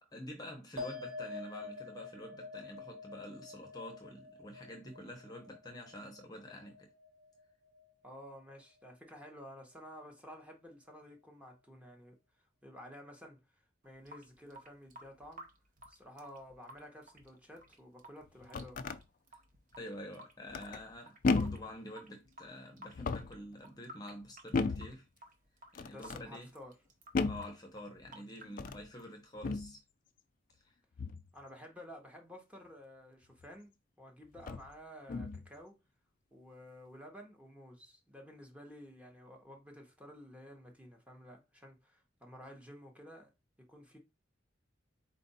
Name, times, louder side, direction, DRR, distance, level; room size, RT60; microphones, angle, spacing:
voice 1, 0.0-6.9 19.8-25.1 25.7-26.5 27.2-29.8 30.6-30.7, left 1 dB, 20° left, 0.8 m, -48 dB
sound 1, 0.8-7.5 7.7-8.4, left 3 dB, 75° right, 2.3 m, -47 dB
voice 2, 8.0-15.5 15.9-18.8 25.9-26.7 31.3-35.8 36.3-43.3 43.6-44.0, equal, 5° right, 0.9 m, -52 dB
Water tap faucet / Sink (filling or washing) / Drip, 13.8-29.8, right 1 dB, 45° right, 0.7 m, -57 dB
sound 2, 18.2-19.0 20.5-20.9 21.2-21.7 22.9-23.4 24.5-25.0 25.7-26.3 27.1-27.5 28.5-28.9 29.4-29.7 31.0-31.3 33.4-33.5 34.4-34.7 35.1-35.5, left 3 dB, 45° left, 0.3 m, -34 dB
4.4 x 2.5 x 4.1 m
head